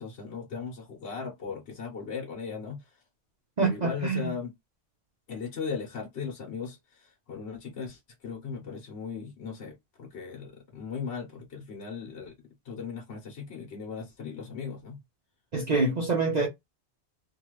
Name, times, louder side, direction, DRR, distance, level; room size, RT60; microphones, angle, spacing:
voice 1, 0.0-3.0 3.6-4.5 5.3-12.3 12.6-15.0, left 5 dB, 70° left, 1.2 m, -38 dB
voice 2, 3.6-4.3 15.5-16.5, right 3 dB, 45° right, 0.8 m, -26 dB
2.8 x 2.4 x 3.0 m
omnidirectional pair, 1.2 m